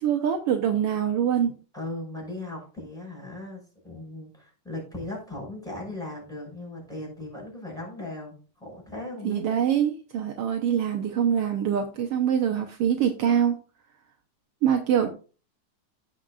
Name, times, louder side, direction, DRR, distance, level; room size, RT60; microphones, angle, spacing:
voice 1, 0.0-1.5 9.2-13.6 14.6-15.1, right 9 dB, 75° right, 3 dB, 1.4 m, -24 dB
voice 2, 1.7-8.3 8.6-9.4, left 2 dB, ahead, -2 dB, 5.8 m, -37 dB
16.0 x 6.5 x 2.5 m, 0.36 s
omnidirectional pair, 3.8 m